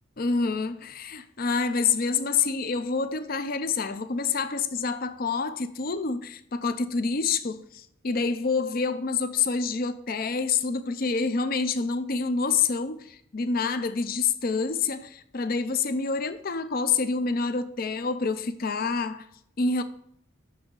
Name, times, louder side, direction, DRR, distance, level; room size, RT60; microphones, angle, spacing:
voice 1, 0.2-19.3 19.6-19.8, left 4 dB, 45° left, 0.5 m, -27 dB
6.2 x 6.1 x 6.3 m
head